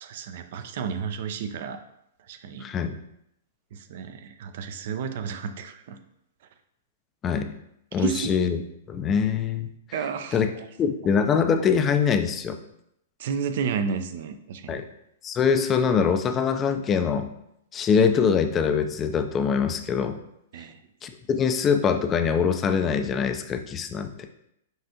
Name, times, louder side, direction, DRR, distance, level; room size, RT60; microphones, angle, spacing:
voice 1, 0.0-1.8 2.3-2.6 3.7-6.0 8.0-8.3 9.9-10.4 13.2-14.8 20.5-20.8, right 6 dB, 60° right, 9 dB, 0.4 m, -31 dB
voice 2, 2.6-3.0 7.2-7.5 7.9-8.6 8.9-9.7 10.3-10.5 10.8-12.6 14.7-14.8 15.2-17.3 17.7-20.2 21.0-24.1, left 6 dB, 25° left, 7 dB, 0.4 m, -23 dB
5.4 x 2.5 x 2.8 m, 0.79 s
hypercardioid pair, 115°, 0 cm